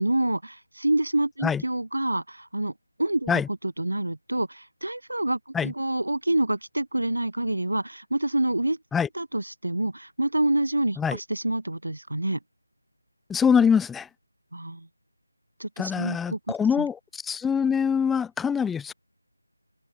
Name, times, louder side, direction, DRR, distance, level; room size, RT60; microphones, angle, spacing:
voice 1, 0.0-2.7 3.0-3.4 3.8-8.8 9.2-12.4 14.5-14.9 15.6-16.4 16.8-16.9, right 1 dB, 75° right, 5.3 m, -27 dB
voice 2, 13.3-14.1 15.8-18.9, left 7 dB, 5° left, 1.6 m, -24 dB
open air
figure-of-eight pair, 165°, 0 cm